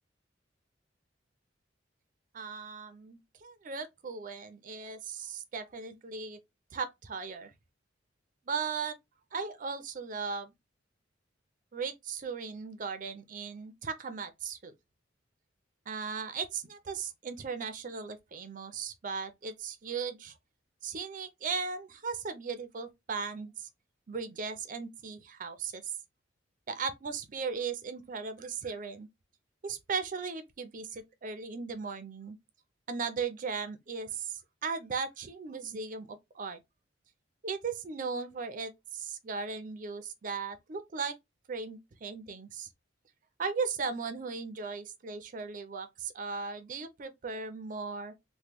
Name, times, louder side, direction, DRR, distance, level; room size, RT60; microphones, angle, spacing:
voice 1, 2.3-6.4 6.7-7.5 8.5-9.0 9.3-10.5 11.7-14.7 15.9-20.3 20.8-23.7 24.1-25.9 26.7-29.1 29.6-32.4 32.9-36.6 37.4-41.2 41.5-42.7 43.4-48.1, right 5 dB, 45° right, 0.5 m, -37 dB
3.0 x 2.1 x 3.3 m
head